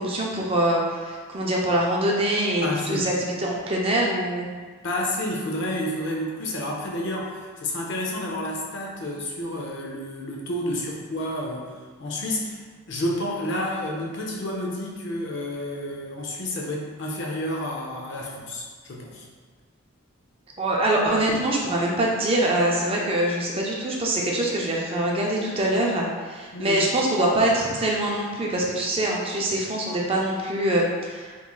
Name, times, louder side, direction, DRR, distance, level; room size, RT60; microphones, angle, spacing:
voice 1, 0.0-4.5 20.6-31.3, right 1 dB, 25° right, -2 dB, 0.4 m, -24 dB
voice 2, 2.6-3.1 4.8-11.7 12.0-12.6 12.9-19.3 26.5-26.8, left 1 dB, 55° left, -2 dB, 0.5 m, -30 dB
3.6 x 3.0 x 2.3 m, 1.5 s
head